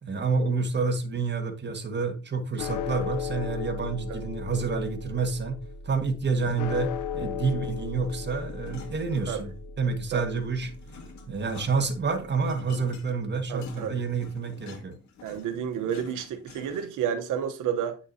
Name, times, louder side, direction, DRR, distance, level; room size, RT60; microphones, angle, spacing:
voice 1, 0.0-5.6 5.8-9.5 9.8-10.7 11.3-14.9, right 4 dB, 35° right, 1.6 m, -28 dB
sound 1, 2.6-13.0, left 6 dB, 85° left, 0.9 m, -37 dB
sound 2, 8.0-9.7 10.1-17.1, left 4 dB, 65° left, 2.2 m, -48 dB
voice 2, 13.5-14.0 15.2-18.0, right 8 dB, 85° right, 0.9 m, -31 dB
9.1 x 6.1 x 2.7 m
cardioid pair, 90°, 30 cm